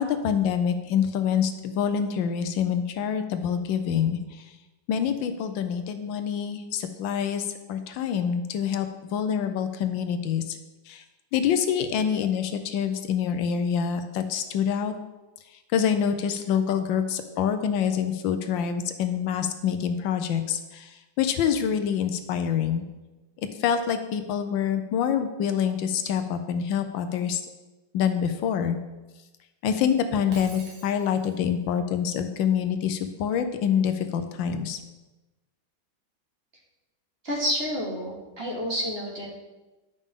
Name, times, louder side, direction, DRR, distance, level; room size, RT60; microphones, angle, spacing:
voice 1, 0.0-4.4 4.9-10.6 10.9-11.0 11.3-14.9 15.7-22.8 23.6-27.5 27.9-28.8 29.6-34.8, left 8 dB, 80° left, 8 dB, 1.3 m, -26 dB
Shatter, 30.3-31.5, right 2 dB, 65° right, 1.9 m, -45 dB
voice 2, 37.2-39.3, equal, 35° right, -3 dB, 1.5 m, -29 dB
10.5 x 5.3 x 3.6 m, 1.1 s
omnidirectional pair, 2.1 m